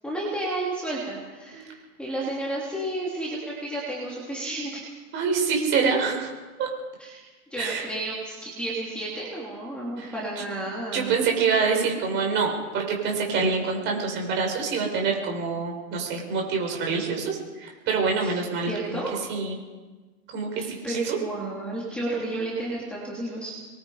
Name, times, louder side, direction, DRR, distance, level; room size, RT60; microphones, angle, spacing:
voice 1, 0.0-4.8 7.0-7.2 7.5-11.1 18.2-18.4 18.7-19.1 20.6-23.5, right 2 dB, ahead, -5 dB, 3.2 m, -32 dB
voice 2, 5.1-6.3 6.6-6.7 7.6-7.9 10.0-10.4 10.9-19.0 19.3-19.6 20.3-21.2, right 5 dB, 25° right, 1 dB, 5.5 m, -26 dB
26.5 x 22.5 x 5.1 m, 1.3 s
supercardioid pair, 165°, 44 cm